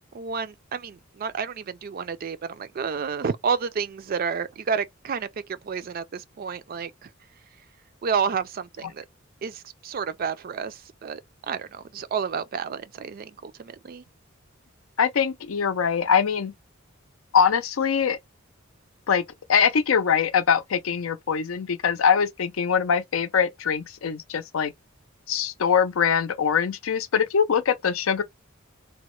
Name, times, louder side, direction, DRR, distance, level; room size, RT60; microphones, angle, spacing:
voice 1, 0.1-7.1 8.0-9.0 9.4-11.2 11.5-14.0, right 6 dB, 45° right, 0.3 m, -30 dB
voice 2, 15.0-16.5 17.3-18.2 19.1-19.2 19.5-24.7 25.3-28.2, left 7 dB, 85° left, 0.5 m, -23 dB
2.9 x 2.1 x 3.0 m
head